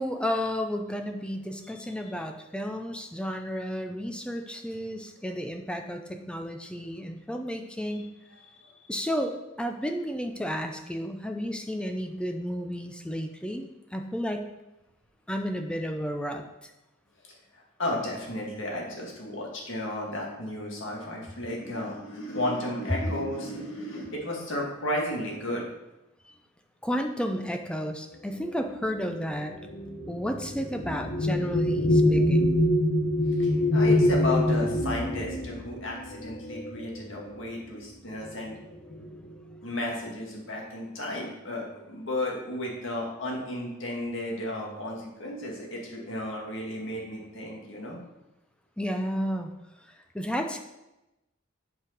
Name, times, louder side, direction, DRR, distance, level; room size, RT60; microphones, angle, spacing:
voice 1, 0.0-8.1 8.9-14.5 15.3-16.7 26.2-26.3 26.8-29.6 30.1-32.5 48.8-49.5 50.1-50.6, equal, 5° left, 5 dB, 0.5 m, -32 dB
voice 2, 1.6-1.9 8.6-8.7 17.5-25.7 33.3-38.5 39.6-48.0, left 1 dB, 65° left, -1 dB, 2.0 m, -33 dB
sound 1, 28.4-37.3 38.2-38.4 38.7-39.3, left 1 dB, 85° left, 1.5 m, -25 dB
7.2 x 4.8 x 5.1 m, 0.96 s
head